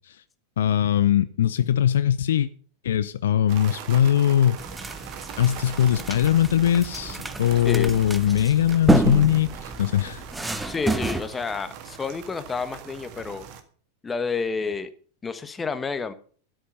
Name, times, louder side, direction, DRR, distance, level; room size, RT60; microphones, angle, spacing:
voice 1, 0.6-2.5 2.8-4.6 5.4-10.2, left 10 dB, 60° left, 0.6 m, -21 dB
sound 1, 3.5-13.6, right 8 dB, 45° right, 1.7 m, -41 dB
sound 2, 4.6-11.2, right 2 dB, 5° right, 1.0 m, -29 dB
voice 2, 7.6-8.0 10.6-13.5 14.0-14.9 15.2-16.1, left 4 dB, 15° left, 1.2 m, -30 dB
12.5 x 10.5 x 5.4 m
figure-of-eight pair, 90°, 0 cm